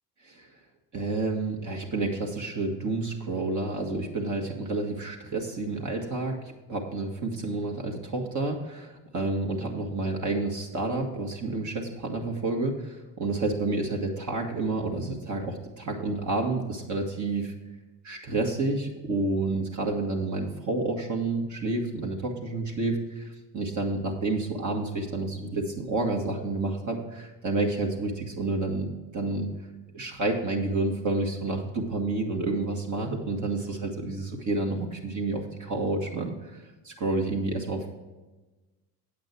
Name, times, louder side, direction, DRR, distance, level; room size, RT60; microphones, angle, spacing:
voice 1, 0.9-17.5 18.0-29.5 29.9-37.9, right 2 dB, 40° right, 1 dB, 1.8 m, -30 dB
8.6 x 8.6 x 4.5 m, 1.2 s
hypercardioid pair, 75°, 46 cm